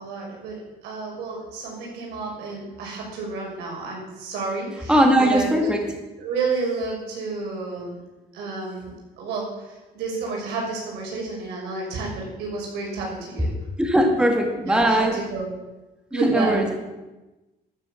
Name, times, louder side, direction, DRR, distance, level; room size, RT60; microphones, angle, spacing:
voice 1, 0.0-5.7 6.2-8.0 8.3-13.5 14.2-14.3 14.7-15.5 16.1-16.6, right 3 dB, 85° right, -2 dB, 6.4 m, -30 dB
voice 2, 4.9-5.9 13.8-15.2 16.1-16.8, right 1 dB, 5° right, 2 dB, 2.2 m, -20 dB
13.0 x 9.8 x 7.4 m, 1.1 s
cardioid pair, 110°, 17 cm